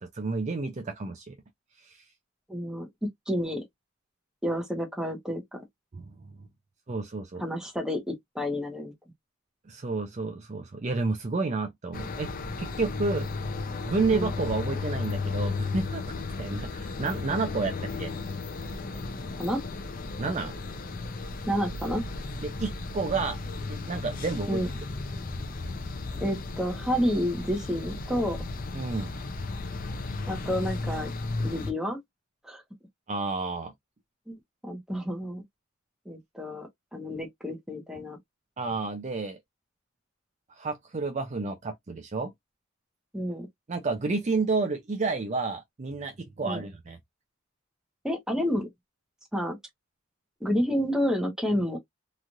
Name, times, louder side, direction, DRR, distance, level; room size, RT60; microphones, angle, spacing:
voice 1, 0.0-1.3 1.8-2.0 5.9-6.1 6.9-7.4 9.7-12.3 12.6-13.3 13.9-16.0 16.4-18.1 20.2-20.5 22.4-23.4 23.7-24.6 25.3-25.4 28.7-29.1 33.1-33.7 38.6-39.4 40.5-42.3 43.7-47.0, right 3 dB, 35° right, 0.4 m, -30 dB
voice 2, 2.5-3.6 4.4-5.6 7.4-8.9 14.1-14.3 19.4-19.6 21.5-22.0 24.5-24.7 26.2-28.4 30.3-31.1 31.4-32.0 32.4-32.6 34.3-34.4 34.6-35.4 36.1-38.2 43.1-43.5 46.4-46.6 48.0-48.7 49.3-49.6 50.4-51.8, equal, 5° right, 0.8 m, -30 dB
sound 1, 11.9-31.7, left 3 dB, 40° left, 0.5 m, -34 dB
3.0 x 2.4 x 2.5 m
head